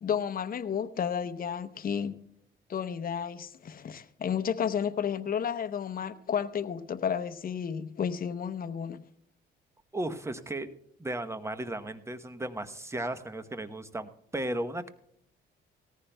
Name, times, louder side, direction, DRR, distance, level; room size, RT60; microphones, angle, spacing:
voice 1, 0.0-2.2 2.7-9.0, left 7 dB, 45° left, 0.8 m, -32 dB
voice 2, 9.9-10.7 11.0-14.9, right 1 dB, 15° right, 0.9 m, -35 dB
18.0 x 14.5 x 2.2 m
cardioid pair, 90°, 20 cm